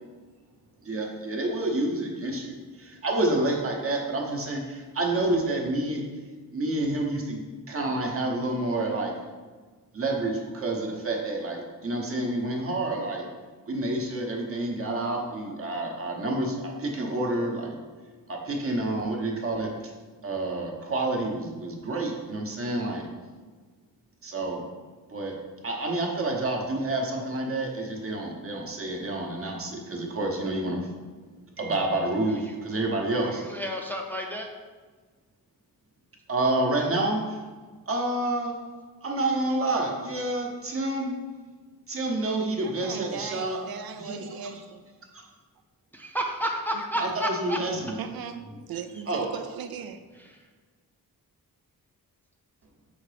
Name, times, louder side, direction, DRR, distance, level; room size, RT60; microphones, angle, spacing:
voice 1, 0.8-6.0 6.5-9.1 9.9-13.3 13.7-17.8 18.3-19.7 20.2-23.0 24.2-24.6 25.1-25.3 25.6-30.8 31.6-33.4 36.3-37.4 37.9-38.5 39.0-41.1 41.9-43.6 44.0-44.2 45.1-45.2 47.0-48.0 49.1-49.3, right 2 dB, 40° right, 0 dB, 1.0 m, -28 dB
voice 2, 33.1-34.5 45.9-47.6, equal, 5° left, 1 dB, 0.5 m, -31 dB
voice 3, 42.6-44.8 46.9-47.0 48.0-50.0, right 7 dB, 80° right, 9 dB, 0.6 m, -38 dB
5.9 x 3.8 x 5.0 m, 1.4 s
wide cardioid pair, 165°, 35 cm